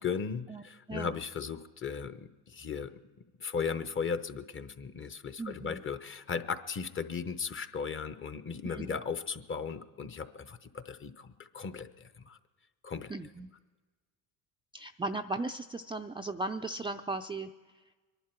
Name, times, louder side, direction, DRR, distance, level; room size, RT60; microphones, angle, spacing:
voice 1, 0.0-3.0 3.4-12.4 12.8-13.1, left 6 dB, 30° left, 11 dB, 0.9 m, -37 dB
voice 2, 0.9-1.2 5.4-5.8 8.6-9.0 13.1-13.5 14.7-17.5, right 2 dB, 15° right, 4 dB, 0.4 m, -37 dB
24.5 x 11.0 x 4.5 m, 1.3 s
supercardioid pair, 85°, 41 cm